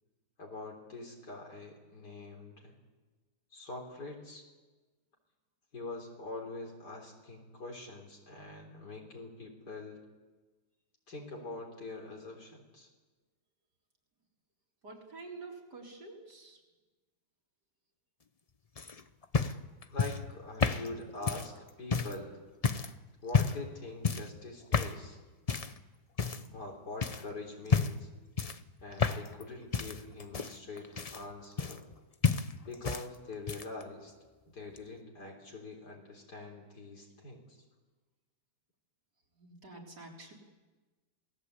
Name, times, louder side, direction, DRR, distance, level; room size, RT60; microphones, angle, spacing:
voice 1, 0.4-2.7 3.5-4.5 5.7-10.0 11.1-12.9 19.9-22.4 23.2-25.2 26.5-28.1 28.8-31.9 32.6-34.1 34.5-37.6, left 2 dB, 70° left, 0 dB, 4.3 m, -44 dB
voice 2, 14.8-16.6 39.4-40.3, right 3 dB, 70° right, -1 dB, 4.7 m, -48 dB
sound 1, 18.8-22.2 22.6-22.9 23.3-23.7 24.0-24.3 24.7-25.0 25.5-25.8 26.2-26.7 27.0-27.2 27.7-28.1 28.4-29.4 29.7-32.0 32.2-33.1 33.3-33.8 34.8-34.9, left 5 dB, 40° left, 0.5 m, -31 dB
27.5 x 18.5 x 8.3 m, 1.3 s
omnidirectional pair, 1.9 m